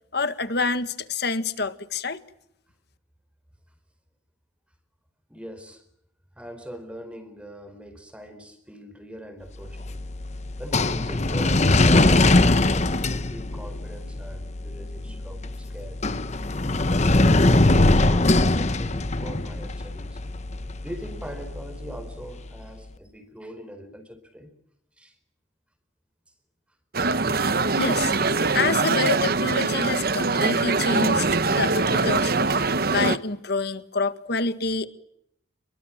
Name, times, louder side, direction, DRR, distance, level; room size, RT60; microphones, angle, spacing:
voice 1, 0.1-2.2 27.8-28.1 28.5-32.4 32.9-34.9, left 4 dB, 55° left, 1.8 m, -27 dB
voice 2, 5.3-5.8 6.3-10.0 10.6-16.0 16.9-20.2 20.8-24.5 25.0-25.2, equal, 5° right, 4.5 m, -41 dB
sound 1, 9.6-22.7, left 2 dB, 35° left, 1.0 m, -22 dB
sound 2, 26.9-33.2, right 3 dB, 50° right, 1.1 m, -23 dB
29.0 x 23.0 x 7.6 m
head